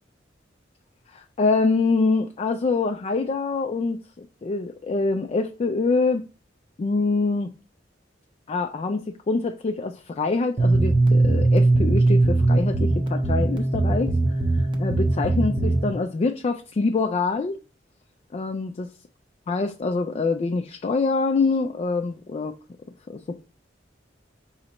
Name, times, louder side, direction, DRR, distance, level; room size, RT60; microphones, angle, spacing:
voice 1, 1.1-6.2 6.8-7.5 8.5-14.1 14.8-17.6 18.3-18.9 19.5-22.6 23.1-23.4, left 3 dB, 35° left, 0.3 m, -25 dB
sound 1, 10.6-15.9, right 2 dB, 25° right, 0.7 m, -20 dB
5.1 x 3.2 x 2.9 m
head